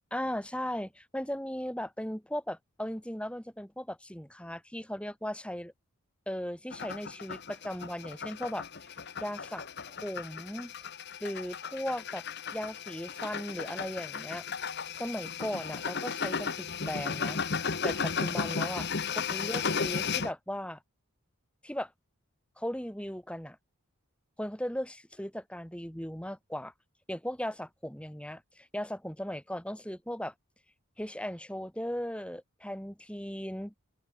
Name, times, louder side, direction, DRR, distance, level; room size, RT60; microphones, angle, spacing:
voice 1, 0.1-5.7 6.3-8.9 9.2-10.7 11.2-12.2 12.5-14.4 14.9-17.4 17.8-18.9 19.3-20.8 21.6-21.9 22.6-23.6 24.4-26.7 27.1-30.3 31.0-33.7, equal, 5° left, 3.0 m, -37 dB
sound 1, 6.7-20.3, left 5 dB, 50° left, 1.2 m, -35 dB
open air
head